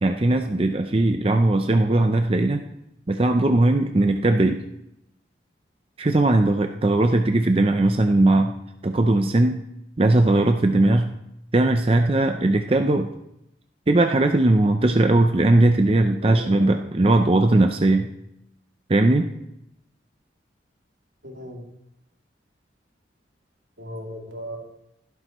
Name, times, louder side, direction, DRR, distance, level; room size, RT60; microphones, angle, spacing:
voice 1, 0.0-2.6 3.1-4.6 6.0-8.5 8.8-9.6 10.0-11.1 11.5-13.1 13.9-18.1 18.9-19.3, right 2 dB, 30° right, 5 dB, 0.5 m, -19 dB
voice 2, 16.2-16.8 21.2-21.7 23.8-24.6, equal, 85° right, -1 dB, 2.7 m, -36 dB
15.5 x 12.0 x 3.0 m, 0.82 s
head